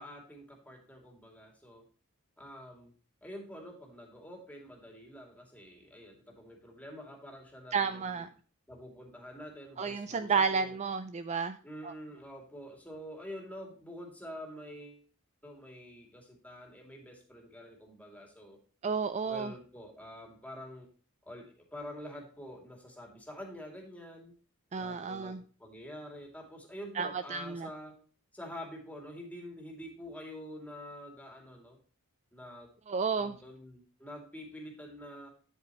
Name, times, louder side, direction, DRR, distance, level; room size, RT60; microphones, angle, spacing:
voice 1, 0.0-1.8 2.4-2.9 3.2-8.3 8.7-10.8 11.6-15.0 15.4-18.6 19.2-20.9 21.2-24.3 24.8-28.0 28.3-31.8 32.3-32.7 33.2-35.3, equal, 5° left, 0 dB, 2.6 m, -47 dB
voice 2, 7.7-8.3 9.8-11.6 11.8-11.9 18.8-19.5 24.7-25.4 27.0-27.7 32.9-33.3, right 5 dB, 30° right, 11 dB, 0.4 m, -31 dB
9.7 x 8.1 x 3.0 m, 0.41 s
head